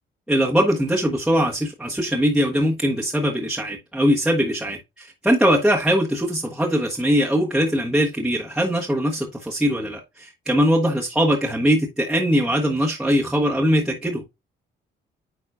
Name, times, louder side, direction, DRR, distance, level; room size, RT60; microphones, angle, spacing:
voice 1, 0.3-4.8 5.2-14.2, equal, 5° right, 1.3 m, -21 dB
9.3 x 4.2 x 2.5 m
cardioid pair, 90°, 20 cm